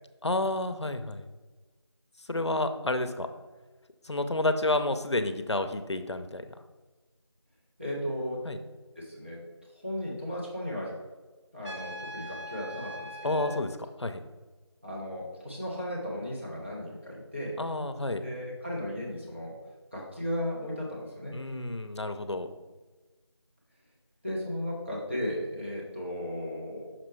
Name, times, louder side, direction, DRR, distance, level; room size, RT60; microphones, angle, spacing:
voice 1, 0.2-1.2 2.3-3.3 4.1-6.4 8.4-8.6 13.2-13.7 14.0-14.2 17.6-18.2 21.3-22.5, left 2 dB, 70° left, 8 dB, 0.6 m, -30 dB
voice 2, 7.8-8.4 9.0-9.4 9.7-10.9 11.5-13.5 14.8-17.6 18.2-19.5 19.9-21.4 24.2-26.9, equal, 25° right, -5 dB, 1.1 m, -35 dB
Trumpet, 11.6-13.6, equal, 85° right, 1.0 m, -41 dB
6.0 x 6.0 x 3.2 m, 1.2 s
figure-of-eight pair, 180°, 15 cm